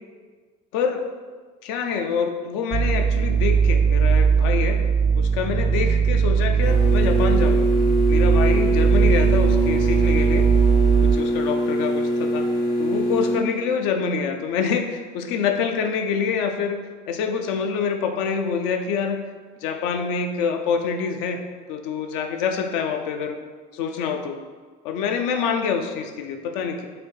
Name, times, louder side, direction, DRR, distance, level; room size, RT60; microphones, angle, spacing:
voice 1, 1.6-4.8 5.1-7.7 8.1-10.5 11.0-12.5 12.8-16.8 17.1-19.2 19.6-21.4 21.7-23.4 23.7-24.4 24.8-26.9, left 6 dB, 80° left, 5 dB, 0.5 m, -26 dB
sound 1, 2.7-11.2, right 6 dB, 45° right, 0.4 m, -19 dB
sound 2, 6.6-13.4, equal, 55° left, 0.9 m, -23 dB
3.3 x 2.8 x 4.4 m, 1.5 s
supercardioid pair, 80°, 19 cm